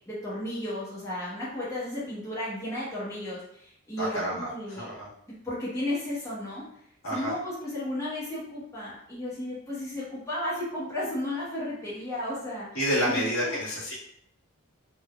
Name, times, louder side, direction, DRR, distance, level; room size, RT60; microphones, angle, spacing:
voice 1, 0.1-4.9 5.4-6.6 7.1-13.6, left 1 dB, 15° left, -9 dB, 0.9 m, -34 dB
voice 2, 4.0-5.1 7.0-7.3 12.7-13.9, equal, 75° left, -8 dB, 1.5 m, -29 dB
3.6 x 2.6 x 2.3 m, 0.68 s
head